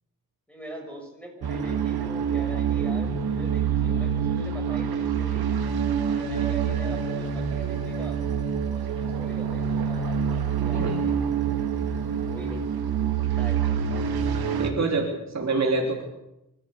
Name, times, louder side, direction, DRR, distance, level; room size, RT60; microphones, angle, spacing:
voice 1, 0.5-5.4 6.1-8.2 8.7-11.6 12.3-12.7 13.2-14.0, equal, 5° left, 1 dB, 6.9 m, -43 dB
sound 1, 1.4-14.7, right 7 dB, 85° right, 2.7 m, -26 dB
voice 2, 10.6-11.0 14.5-16.0, right 3 dB, 45° right, 2 dB, 3.3 m, -26 dB
26.0 x 14.0 x 8.3 m, 0.88 s
wide cardioid pair, 140°, 36 cm